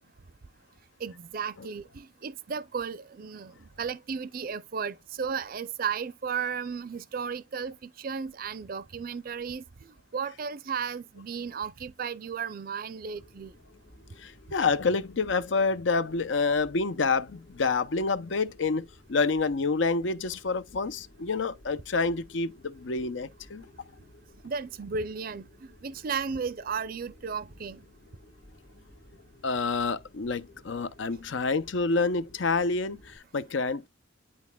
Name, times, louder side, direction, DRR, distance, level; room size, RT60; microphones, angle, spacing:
voice 1, 1.0-13.6 24.4-27.8, right 6 dB, 50° right, 0.5 m, -34 dB
sound 1, 13.2-33.2, left 1 dB, 55° left, 1.8 m, -55 dB
voice 2, 14.2-23.7 29.4-33.9, left 4 dB, 75° left, 0.6 m, -28 dB
10.5 x 4.1 x 2.3 m
head